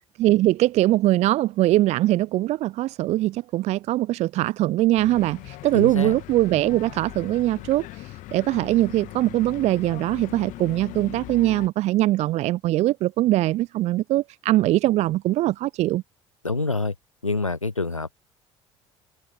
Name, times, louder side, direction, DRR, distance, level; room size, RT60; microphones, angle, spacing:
voice 1, 0.2-16.0, right 16 dB, 45° right, 0.5 m, -22 dB
sound 1, 5.0-11.7, left 17 dB, 50° left, 2.1 m, -40 dB
voice 2, 5.7-6.2 16.4-16.9 17.2-18.1, left 3 dB, 90° left, 0.9 m, -26 dB
open air
figure-of-eight pair, 55°, 16 cm